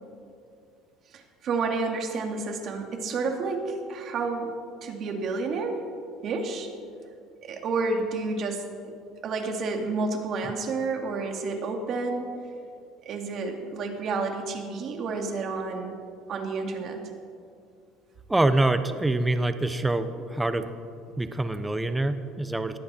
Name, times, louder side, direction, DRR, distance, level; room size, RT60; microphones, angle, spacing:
voice 1, 1.1-4.5 4.8-5.8 6.2-6.7 7.4-9.0 9.2-12.3 13.0-16.0 16.3-17.0, right 3 dB, 45° right, 3 dB, 2.4 m, -30 dB
voice 2, 18.3-20.7 21.2-22.8, right 2 dB, 10° right, 10 dB, 0.8 m, -25 dB
20.0 x 15.0 x 4.4 m, 2.4 s
cardioid pair, 130°, 0 cm